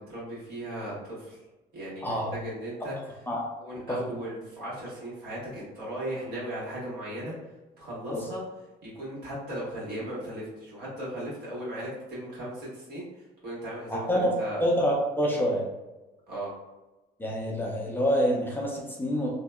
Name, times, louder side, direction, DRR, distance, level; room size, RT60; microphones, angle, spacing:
voice 1, 0.1-1.4 1.7-2.9 3.6-7.3 7.8-8.4 8.8-14.6 16.3-16.5, right 1 dB, 70° right, -7 dB, 1.4 m, -37 dB
voice 2, 13.9-14.3 14.6-15.7 17.2-19.3, equal, 10° left, -3 dB, 0.5 m, -27 dB
2.7 x 2.1 x 2.3 m, 1.1 s
cardioid pair, 110°, 17 cm